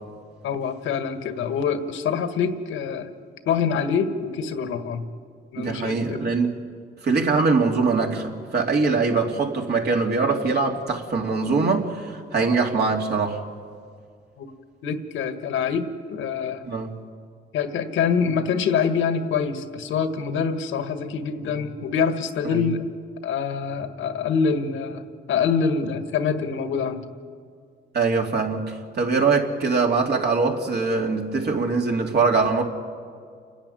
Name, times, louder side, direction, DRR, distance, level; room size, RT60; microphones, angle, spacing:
voice 1, 0.4-3.1 3.4-5.1 5.5-6.2 14.4-14.5 14.8-16.6 17.5-22.8 23.2-25.0 25.3-27.0, left 6 dB, 80° left, 8 dB, 1.6 m, -25 dB
voice 2, 5.6-6.6 7.0-13.4 16.7-16.9 22.4-22.7 27.9-32.6, right 4 dB, 55° right, 1 dB, 2.9 m, -22 dB
29.5 x 10.5 x 9.5 m, 2.2 s
cardioid pair, 90°, 20 cm